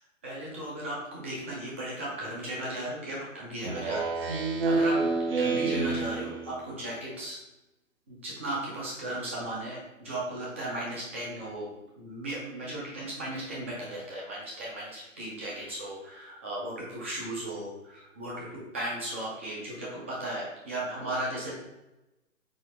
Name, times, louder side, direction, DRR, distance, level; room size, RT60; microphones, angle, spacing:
voice 1, 0.2-4.9 5.4-7.4 8.1-11.7 12.0-21.5, right 1 dB, 10° right, -5 dB, 0.4 m, -36 dB
Speech synthesizer, 3.6-6.7, right 3 dB, 45° right, 0.7 m, -28 dB
4.1 x 4.0 x 3.2 m, 0.98 s
figure-of-eight pair, 135°, 40 cm